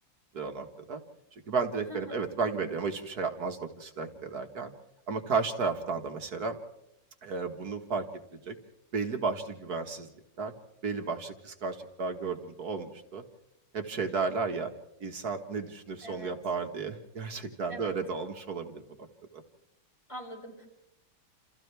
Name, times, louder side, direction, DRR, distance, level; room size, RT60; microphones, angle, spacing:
voice 1, 0.3-1.0 1.5-4.7 5.1-6.6 7.2-8.1 8.5-8.6 8.9-10.1 10.4-10.5 10.8-13.2 13.7-14.7 15.0-19.1 19.3-19.4, right 4 dB, 55° right, 5 dB, 2.0 m, -33 dB
voice 2, 1.9-2.2 16.0-16.3 17.7-18.0 20.1-20.7, equal, 15° left, 0 dB, 5.4 m, -43 dB
29.0 x 28.5 x 3.4 m, 0.82 s
omnidirectional pair, 2.1 m